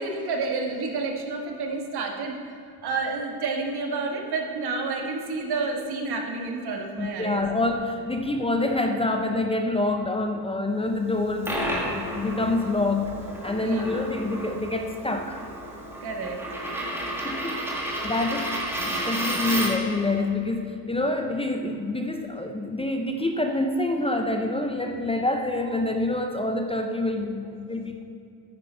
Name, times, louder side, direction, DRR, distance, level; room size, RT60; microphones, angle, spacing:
voice 1, 0.0-2.5 2.8-7.4 13.6-14.0 16.0-16.4, right 3 dB, 65° right, 2 dB, 1.6 m, -30 dB
voice 2, 7.0-15.4 17.2-17.7 18.0-18.5 18.8-28.0, left 2 dB, 15° left, 4 dB, 0.5 m, -27 dB
Coin (dropping), 11.1-20.0, right 1 dB, 5° right, 1.7 m, -31 dB
9.6 x 9.5 x 4.5 m, 2.7 s
cardioid pair, 135°, 41 cm